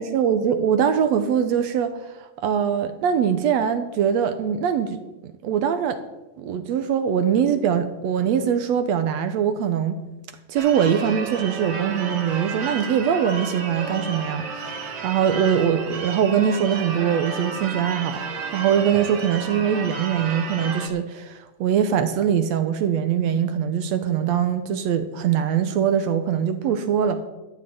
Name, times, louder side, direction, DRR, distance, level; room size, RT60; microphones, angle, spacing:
voice 1, 0.0-1.9 2.2-5.0 5.2-6.0 6.4-10.0 10.5-27.2, right 8 dB, 70° right, 9 dB, 1.8 m, -22 dB
Church bell / Car / Alarm, 10.6-20.9, right 5 dB, 50° right, 2.2 m, -32 dB
12.5 x 6.2 x 9.3 m, 1.0 s
omnidirectional pair, 3.5 m